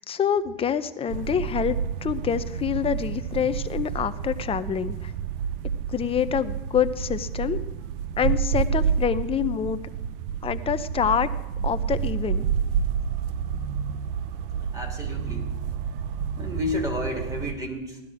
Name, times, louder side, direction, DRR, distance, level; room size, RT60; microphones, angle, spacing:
voice 1, 0.0-5.1 5.9-7.6 8.2-9.8 10.4-11.3 11.6-12.5, left 8 dB, 20° left, 11 dB, 0.6 m, -26 dB
sound 1, 1.1-17.5, right 7 dB, 65° right, 0.8 m, -29 dB
voice 2, 14.7-15.5 16.4-18.0, left 1 dB, 10° right, 2 dB, 2.9 m, -31 dB
17.5 x 12.5 x 4.9 m, 1.1 s
supercardioid pair, 135°, 30 cm